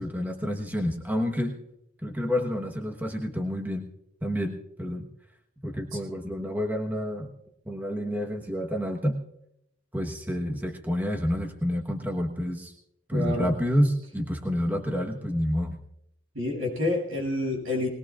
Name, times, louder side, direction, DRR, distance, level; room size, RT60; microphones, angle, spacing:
voice 1, 0.0-1.6 2.0-3.9 4.2-5.1 5.6-7.3 7.7-9.2 9.9-12.7 13.1-15.8, equal, 10° right, 1 dB, 1.2 m, -29 dB
voice 2, 13.1-13.5 16.3-17.9, left 2 dB, 80° right, -1 dB, 7.6 m, -28 dB
21.5 x 20.5 x 2.5 m, 0.78 s
head